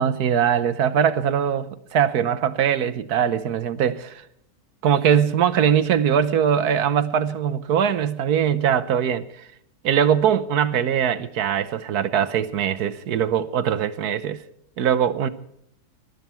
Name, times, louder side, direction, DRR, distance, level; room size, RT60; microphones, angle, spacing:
voice 1, 0.0-4.2 4.8-9.5 9.8-14.4 14.8-15.3, right 8 dB, 75° right, 1.4 m, -21 dB
19.5 x 13.0 x 4.5 m
omnidirectional pair, 1.7 m